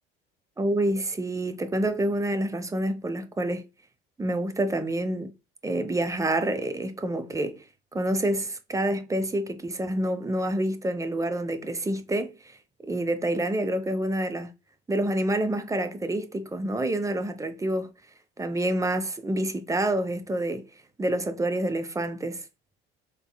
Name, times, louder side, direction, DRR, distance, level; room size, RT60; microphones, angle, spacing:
voice 1, 0.6-3.6 4.2-5.3 5.6-7.6 7.9-12.3 12.8-14.5 14.9-17.9 18.4-20.7 21.0-22.4, right 1 dB, 10° right, 0.5 m, -27 dB
3.5 x 3.4 x 2.2 m
hypercardioid pair, 65°, 31 cm